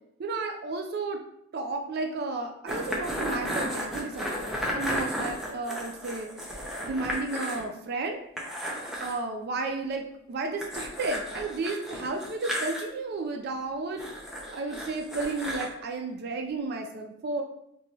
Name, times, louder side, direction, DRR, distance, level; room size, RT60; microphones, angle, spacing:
voice 1, 0.2-1.2 1.5-8.2 9.0-14.0 14.5-17.4, right 3 dB, 50° right, 3 dB, 0.4 m, -33 dB
sound 1, 2.7-7.6 7.9-8.0 8.4-9.2 10.6-12.8 14.0-15.7, equal, ahead, 0.6 m, -33 dB
4.4 x 3.0 x 2.7 m, 0.76 s
head